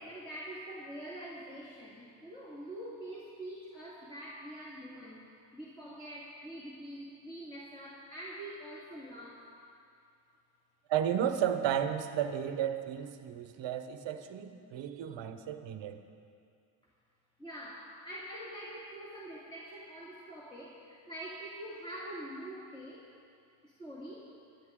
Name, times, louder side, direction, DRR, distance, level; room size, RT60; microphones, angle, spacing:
voice 1, 0.0-5.3 5.5-9.5 17.4-23.1 23.6-24.3, right 1 dB, 10° left, -7 dB, 2.2 m, -45 dB
voice 2, 10.9-16.0, right 9 dB, 65° right, 9 dB, 1.0 m, -33 dB
18.0 x 12.0 x 3.7 m, 2.4 s
cardioid pair, 100°, 47 cm